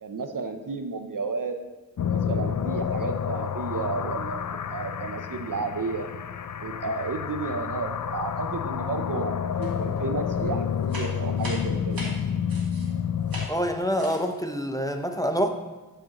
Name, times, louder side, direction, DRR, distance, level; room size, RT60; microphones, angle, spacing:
voice 1, 0.0-1.6 2.1-4.4 4.7-6.1 6.6-12.0, right 4 dB, 65° right, 7 dB, 0.6 m, -32 dB
sound 1, 2.0-13.5, left 7 dB, 60° left, 0.5 m, -29 dB
sound 2, 9.6-10.0 10.2-12.9 13.3-13.6 13.9-14.3, right 1 dB, 80° right, 2.0 m, -39 dB
voice 2, 13.5-15.5, equal, 10° left, 5 dB, 0.6 m, -26 dB
11.5 x 5.0 x 2.9 m, 1.2 s
wide cardioid pair, 50°, 34 cm